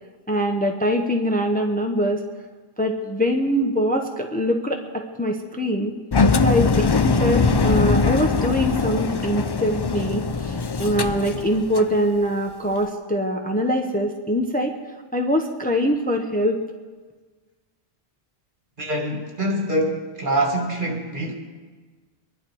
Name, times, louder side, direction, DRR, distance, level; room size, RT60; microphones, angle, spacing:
voice 1, 0.3-2.2 2.8-6.0 6.4-14.7 15.1-16.6, equal, 10° left, 3 dB, 1.0 m, -23 dB
Engine, 6.1-11.9, left 4 dB, 40° left, 0.3 m, -21 dB
voice 2, 18.8-21.3, right 1 dB, 50° right, 0 dB, 2.5 m, -24 dB
23.5 x 11.5 x 4.7 m, 1.4 s
omnidirectional pair, 1.1 m